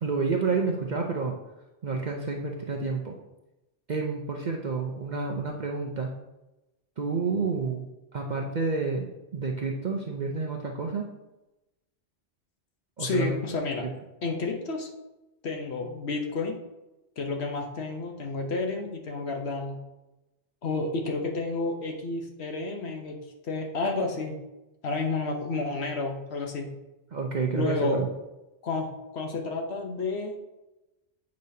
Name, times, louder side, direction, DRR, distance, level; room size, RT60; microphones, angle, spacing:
voice 1, 0.0-1.4 1.8-3.2 3.9-6.1 7.0-7.8 8.1-11.1 13.0-13.4 27.1-28.1, right 4 dB, 45° right, 1 dB, 0.6 m, -29 dB
voice 2, 13.0-13.9 14.2-14.9 15.4-16.6 17.2-19.8 20.6-23.2 23.4-24.4 24.8-26.7 27.5-28.0 28.6-30.3, left 3 dB, 60° left, 2 dB, 1.1 m, -30 dB
8.2 x 5.2 x 2.7 m, 0.99 s
omnidirectional pair, 1.3 m